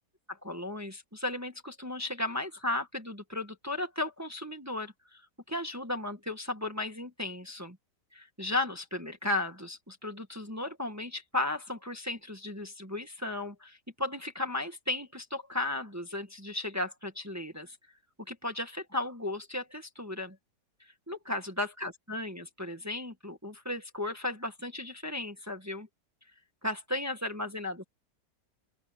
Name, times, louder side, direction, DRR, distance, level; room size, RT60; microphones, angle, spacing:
voice 1, 0.3-5.2 5.5-7.8 8.1-17.8 18.3-20.4 20.8-25.9 26.6-27.8, left 2 dB, 10° right, 1.7 m, -35 dB
open air
omnidirectional pair, 1.9 m